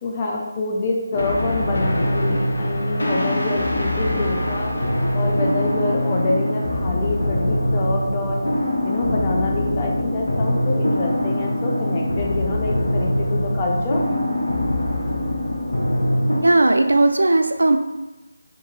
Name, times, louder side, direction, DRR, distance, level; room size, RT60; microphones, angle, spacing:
voice 1, 0.0-8.5 8.8-14.0, left 2 dB, 25° left, -2 dB, 0.5 m, -26 dB
sound 1, 1.1-16.4, left 1 dB, 80° left, 0.6 m, -23 dB
voice 2, 16.4-17.8, right 2 dB, 85° right, 6 dB, 0.3 m, -16 dB
2.7 x 2.5 x 2.8 m, 1.1 s
figure-of-eight pair, 165°, 0 cm